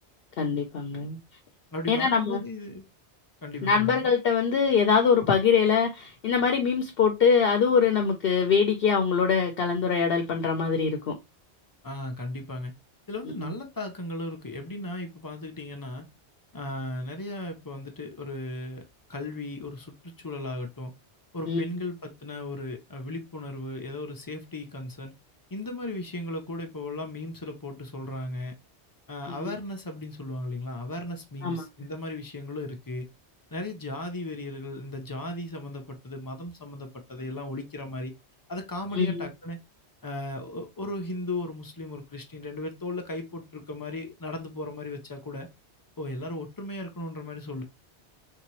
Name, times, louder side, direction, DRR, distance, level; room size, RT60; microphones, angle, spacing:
voice 1, 0.4-1.2 1.9-2.4 3.6-11.1 13.4-13.5 21.5-21.6 29.4-29.5 31.4-31.7 38.9-39.3, left 6 dB, 65° left, 0.7 m, -23 dB
voice 2, 1.7-2.8 3.4-4.1 11.8-12.7 13.1-16.1 16.5-18.8 19.1-20.9 21.3-25.1 25.5-28.5 29.1-33.1 33.5-38.1 38.5-39.6 40.0-45.5 46.0-47.6, left 2 dB, 30° left, 0.4 m, -36 dB
3.3 x 2.8 x 2.9 m
omnidirectional pair, 1.1 m